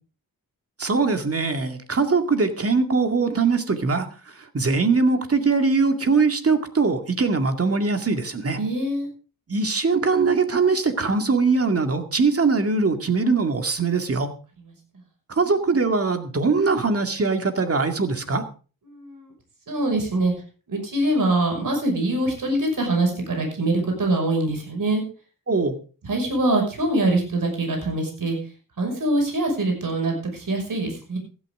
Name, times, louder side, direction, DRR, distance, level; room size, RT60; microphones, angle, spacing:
voice 1, 0.8-4.1 4.5-8.6 9.5-14.3 15.3-18.4 25.5-25.7, right 4 dB, 40° right, 6 dB, 2.2 m, -21 dB
voice 2, 8.6-9.1 18.9-19.3 19.7-20.3 20.7-25.0 26.0-28.4 28.8-31.2, right 2 dB, 65° right, 3 dB, 6.0 m, -23 dB
16.0 x 13.0 x 3.7 m, 0.36 s
wide cardioid pair, 85°, 36 cm